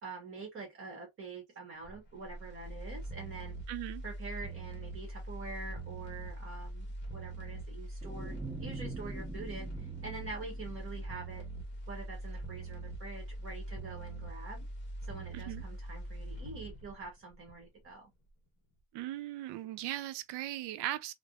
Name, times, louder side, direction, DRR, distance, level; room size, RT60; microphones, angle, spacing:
voice 1, 0.0-3.5 4.0-11.4 11.9-14.7 15.1-18.1, right 3 dB, 35° right, 1.0 m, -45 dB
sound 1, 1.8-17.9 18.3-18.4, right 1 dB, 25° left, 0.8 m, -42 dB
voice 2, 3.7-4.0 15.3-15.6 18.9-21.1, right 14 dB, 85° right, 0.5 m, -38 dB
sound 2, 8.0-11.3, right 3 dB, 15° right, 0.8 m, -45 dB
3.3 x 2.0 x 2.3 m
cardioid pair, 175°, 40 cm